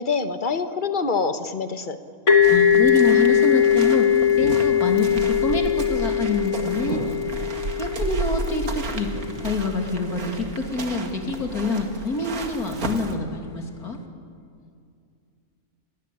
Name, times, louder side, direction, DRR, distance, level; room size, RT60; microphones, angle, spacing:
voice 1, 0.0-2.0, left 4 dB, 35° left, 9 dB, 1.4 m, -25 dB
voice 2, 2.3-7.2 7.8-9.1 9.4-14.0, left 2 dB, 80° left, 3 dB, 3.4 m, -27 dB
sound 1, 2.3-9.8, left 8 dB, 55° left, 1.9 m, -21 dB
sound 2, 2.4-13.2, right 3 dB, 75° right, 2.4 m, -33 dB
sound 3, 4.4-5.2 6.9-7.6 9.1-9.8 11.2-11.8 13.4-13.5, right 3 dB, 55° right, 2.3 m, -36 dB
28.5 x 21.5 x 8.6 m, 2.3 s
omnidirectional pair, 1.6 m